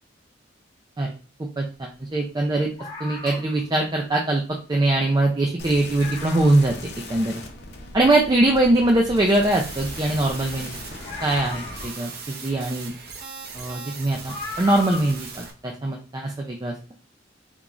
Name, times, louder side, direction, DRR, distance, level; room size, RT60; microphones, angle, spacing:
voice 1, 1.6-2.7 3.0-4.4 4.7-6.7 7.1-7.4 7.9-10.8 11.2-12.9 13.5-16.7, right 2 dB, 20° right, 1 dB, 0.4 m, -22 dB
sound 1, 2.8-3.7 4.8-4.9 5.2-5.3 5.7-5.8 6.0-6.8 7.3-7.4 11.0-12.3 13.5-13.6 14.3-15.2 15.5-15.6, left 3 dB, 25° left, 0.6 m, -37 dB
sound 2, 5.6-11.8, left 2 dB, 60° left, 0.7 m, -39 dB
sound 3, 9.3-15.5, right 4 dB, 55° right, 0.7 m, -39 dB
3.7 x 2.4 x 3.0 m, 0.36 s
head